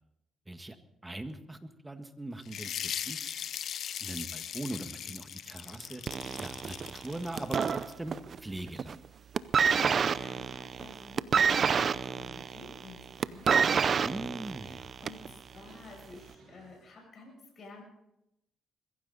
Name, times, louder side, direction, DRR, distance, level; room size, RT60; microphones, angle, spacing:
voice 1, 1.0-3.3 4.0-6.0 6.4-8.9 14.0-14.8, right 1 dB, 15° right, 8 dB, 1.6 m, -41 dB
sound 1, 2.5-7.9, left 9 dB, 65° left, 0.8 m, -39 dB
sound 2, 5.3-11.0 11.5-11.6 12.0-12.1 13.0-16.9, right 3 dB, 65° right, 7.0 m, -59 dB
sound 3, 6.1-8.4 8.7-9.1 9.3-15.3 16.1-16.2, right 6 dB, 50° right, 0.6 m, -28 dB
voice 2, 9.7-17.8, left 3 dB, 50° left, 0 dB, 7.5 m, -52 dB
22.0 x 15.0 x 4.1 m, 0.86 s
cardioid pair, 90°, 0 cm